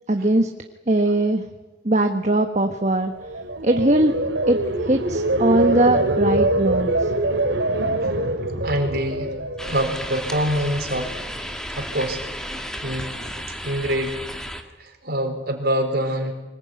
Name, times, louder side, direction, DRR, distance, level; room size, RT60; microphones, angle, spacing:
voice 1, 0.1-0.5 0.9-1.4 1.8-3.1 3.6-4.1 4.5-4.6 4.9-6.9, right 1 dB, 35° right, 5 dB, 1.2 m, -20 dB
sound 1, 3.1-10.3 10.7-11.1, right 2 dB, 70° right, 3.3 m, -24 dB
voice 2, 8.6-9.3 9.7-11.1 11.8-12.2 12.8-14.2 14.8-16.3, equal, 50° right, 4 dB, 4.6 m, -25 dB
sound 2, 9.6-14.6, equal, 5° left, 1.9 m, -33 dB
24.5 x 21.0 x 9.6 m, 1.2 s
head